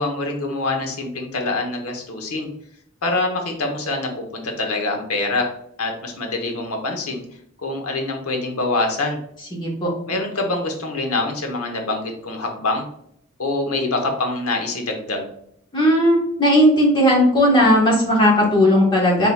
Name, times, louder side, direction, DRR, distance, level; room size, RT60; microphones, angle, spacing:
voice 1, 0.0-2.5 3.0-5.5 5.8-7.2 7.6-9.2 10.1-12.8 13.4-15.3, left 2 dB, 90° left, 3 dB, 0.9 m, -25 dB
voice 2, 9.5-9.9 15.7-19.3, equal, 20° left, -4 dB, 1.2 m, -16 dB
4.1 x 3.7 x 2.3 m, 0.70 s
head